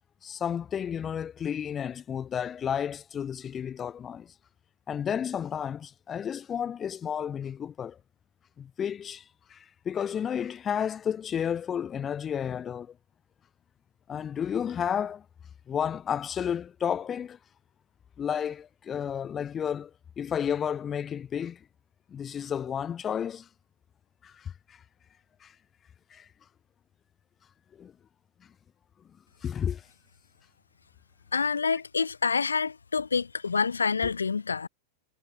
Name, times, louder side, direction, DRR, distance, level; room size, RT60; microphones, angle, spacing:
voice 1, 0.2-4.3 4.9-8.0 8.6-9.2 9.5-12.9 14.1-15.2 15.7-17.4 18.2-19.9 20.2-21.6 22.1-23.5 24.2-24.8 25.4-25.5 26.1-26.3 27.8-27.9 29.4-29.8, left 8 dB, 25° left, 0.6 m, -32 dB
voice 2, 31.3-34.7, left 5 dB, 75° left, 0.6 m, -27 dB
figure-of-eight pair, 90°, 0 cm